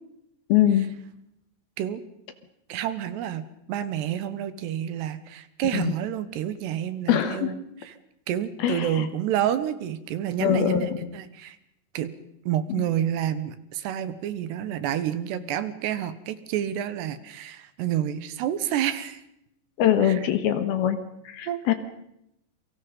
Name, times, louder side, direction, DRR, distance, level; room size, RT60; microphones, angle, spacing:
voice 1, 0.5-0.9 5.7-5.9 7.1-7.5 8.6-9.0 10.4-11.0 19.8-21.7, left 10 dB, 70° left, 10 dB, 3.0 m, -23 dB
voice 2, 2.7-7.6 7.8-7.9 8.3-11.6 11.9-12.1 12.5-19.2 20.0-20.2 21.5-21.7, right 11 dB, 75° right, 13 dB, 3.3 m, -29 dB
29.5 x 23.5 x 5.4 m, 0.81 s
omnidirectional pair, 5.0 m